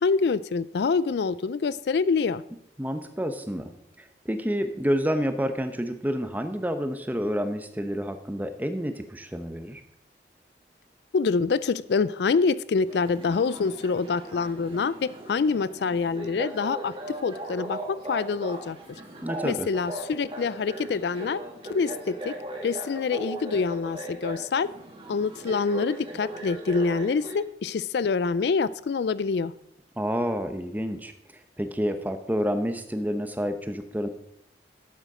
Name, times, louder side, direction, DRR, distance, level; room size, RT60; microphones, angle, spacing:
voice 1, 0.0-2.4 11.1-16.9 17.2-18.8 19.4-21.4 21.7-22.3 22.6-24.7 25.1-29.5, left 4 dB, 70° left, 18 dB, 0.4 m, -26 dB
voice 2, 2.8-3.7 4.0-9.8 19.2-19.7 30.0-31.1 31.6-34.1, equal, 10° right, 8 dB, 0.8 m, -29 dB
sound 1, 12.9-27.4, right 1 dB, 30° right, 2.1 m, -38 dB
12.0 x 8.1 x 4.9 m, 0.74 s
head